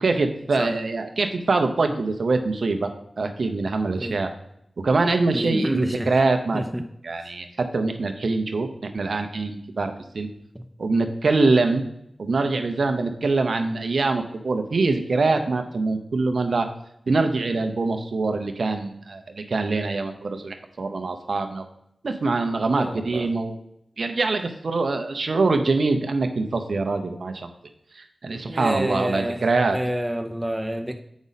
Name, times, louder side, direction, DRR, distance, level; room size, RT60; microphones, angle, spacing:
voice 1, 0.0-4.3 4.8-6.6 7.0-10.3 10.8-11.8 12.2-16.7 17.1-21.6 22.0-23.6 24.0-27.5 27.9-29.8, right 3 dB, 75° right, 6 dB, 0.7 m, -24 dB
voice 2, 5.3-6.1 6.5-6.8 10.5-10.7 22.8-23.3 28.4-29.4 29.7-31.0, equal, 10° right, 5 dB, 0.6 m, -28 dB
7.1 x 5.2 x 4.0 m, 0.76 s
cardioid pair, 40°, 0 cm